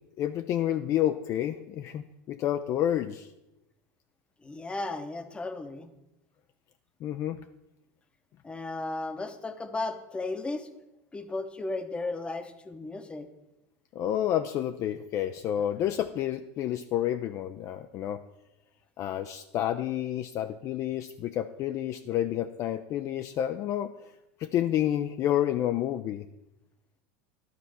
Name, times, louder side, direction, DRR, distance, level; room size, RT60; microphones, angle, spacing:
voice 1, 0.2-3.3 7.0-7.4 13.9-18.2 19.0-23.9 24.4-26.3, left 11 dB, 40° left, 9 dB, 0.4 m, -29 dB
voice 2, 4.4-5.9 8.4-10.7 11.1-13.3, left 2 dB, 15° left, 9 dB, 0.8 m, -35 dB
12.0 x 4.1 x 7.5 m, 0.94 s
supercardioid pair, 130°, 8 cm